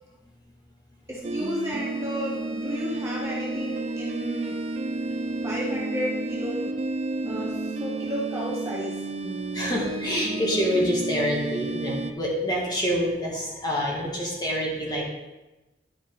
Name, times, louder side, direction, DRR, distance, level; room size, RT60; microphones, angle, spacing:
voice 1, 1.1-4.6 5.4-6.8 7.2-9.0, equal, 15° right, -5 dB, 1.1 m, -32 dB
sound 1, 1.2-12.1, right 2 dB, 40° right, 0.4 m, -31 dB
voice 2, 9.5-15.0, equal, 25° left, -3 dB, 1.8 m, -26 dB
11.0 x 5.0 x 3.8 m, 1.1 s
head